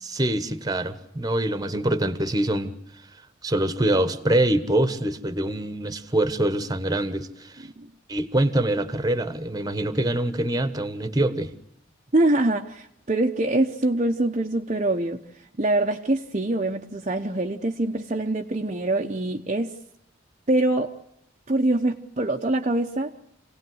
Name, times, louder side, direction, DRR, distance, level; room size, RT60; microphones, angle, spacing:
voice 1, 0.1-2.7 3.4-7.7 8.1-11.5, right 1 dB, 20° right, 1.3 m, -24 dB
voice 2, 12.1-15.2 15.6-19.7 20.5-20.9 21.5-23.1, right 2 dB, 35° right, 0.9 m, -24 dB
27.5 x 18.0 x 8.0 m
head